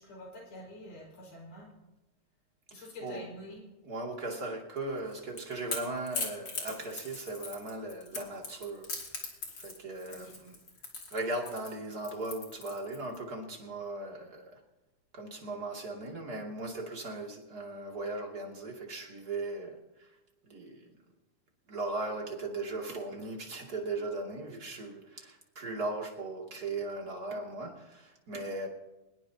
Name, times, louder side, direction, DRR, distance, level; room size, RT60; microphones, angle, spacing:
voice 1, 0.0-1.7 2.7-3.6 10.1-10.3, left 1 dB, 80° left, -1 dB, 6.9 m, -47 dB
voice 2, 2.7-3.3 3.8-9.2 9.6-10.6 11.1-14.6 15.1-20.1 20.4-20.8 21.7-28.7, right 2 dB, 30° right, -1 dB, 2.9 m, -38 dB
Crackle / Crack, 5.0-13.2, left 3 dB, 35° left, 3.2 m, -40 dB
22.5 x 20.5 x 2.9 m, 1.0 s
omnidirectional pair, 3.7 m